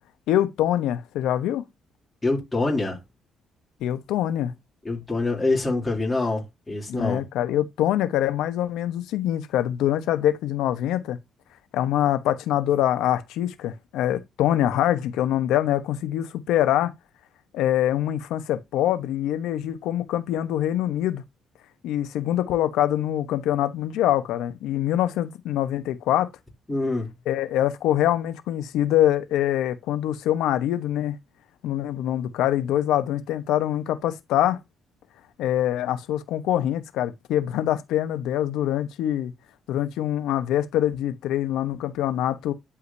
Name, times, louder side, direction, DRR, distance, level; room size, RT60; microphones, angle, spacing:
voice 1, 0.3-1.6 3.8-4.5 6.9-11.2 11.7-16.9 17.5-21.2 21.8-26.3 27.3-31.2 31.6-34.6 35.4-39.3 39.7-42.5, left 12 dB, 90° left, 1.1 m, -24 dB
voice 2, 2.2-3.0 4.8-7.2 26.7-27.1, left 2 dB, 15° left, 3.1 m, -25 dB
11.5 x 5.0 x 2.8 m
cardioid pair, 90°, 0 cm